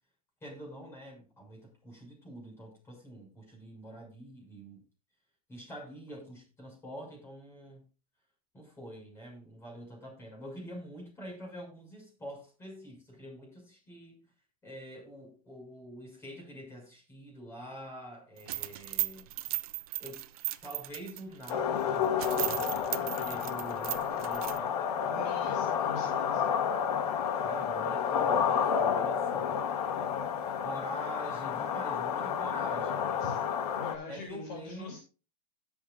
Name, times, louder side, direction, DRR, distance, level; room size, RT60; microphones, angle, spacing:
voice 1, 0.4-4.8 5.5-7.8 8.5-14.2 14.6-19.3 20.0-20.2 20.6-25.0 27.2-29.6 30.6-33.2 34.1-35.0, equal, 10° left, 6.8 m, -46 dB
sound 1, 18.4-21.5 21.9-22.0 22.2-24.6, right 16 dB, 65° right, 0.8 m, -36 dB
sound 2, 21.5-34.0, left 7 dB, 75° left, 1.6 m, -30 dB
voice 2, 25.1-26.5 33.2-33.4 33.7-35.0, left 3 dB, 40° left, 3.2 m, -42 dB
17.5 x 7.1 x 2.6 m
supercardioid pair, 150°, 20 cm